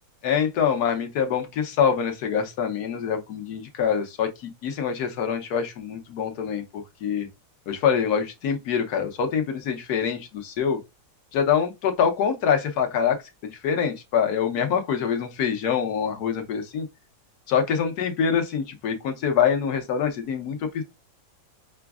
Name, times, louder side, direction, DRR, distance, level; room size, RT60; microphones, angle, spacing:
voice 1, 0.2-4.3 4.6-7.3 7.7-10.8 11.3-13.2 13.4-16.9 17.5-20.8, left 7 dB, 60° left, 1.3 m, -25 dB
6.0 x 2.2 x 2.3 m
omnidirectional pair, 2.1 m